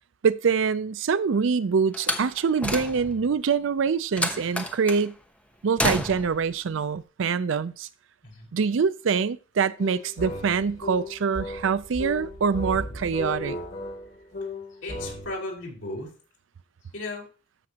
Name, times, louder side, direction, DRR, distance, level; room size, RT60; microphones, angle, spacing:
voice 1, 0.2-5.1 5.6-7.9 8.5-13.6, right 5 dB, 75° right, 0.5 m, -25 dB
Slam, 1.9-3.3 4.2-5.1 5.8-6.4, left 1 dB, 5° left, 0.9 m, -29 dB
sound 1, 9.8-15.3, left 1 dB, 55° left, 5.7 m, -35 dB
voice 2, 14.7-16.1 16.9-17.3, left 2 dB, 85° left, 4.4 m, -35 dB
13.5 x 6.0 x 2.9 m
head